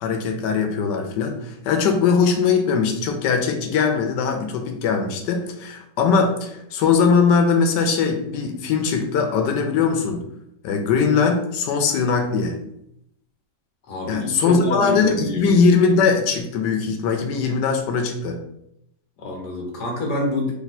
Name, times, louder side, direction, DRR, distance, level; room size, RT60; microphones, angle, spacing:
voice 1, 0.0-10.3 10.6-12.6 14.1-18.4, left 5 dB, 90° left, 5 dB, 1.3 m, -20 dB
voice 2, 13.9-15.4 19.2-20.5, left 2 dB, 70° left, -1 dB, 1.6 m, -27 dB
3.4 x 2.7 x 4.1 m, 0.78 s
omnidirectional pair, 1.8 m